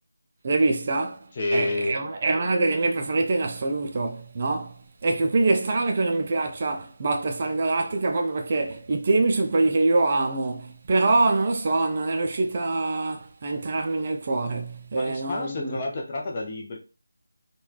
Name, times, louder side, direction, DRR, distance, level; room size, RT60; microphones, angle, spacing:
voice 1, 0.4-15.8, right 3 dB, 35° right, 0.3 m, -24 dB
voice 2, 1.4-2.0 14.9-16.8, left 2 dB, 25° left, 0.5 m, -29 dB
3.1 x 2.2 x 2.4 m
figure-of-eight pair, 160°, 0 cm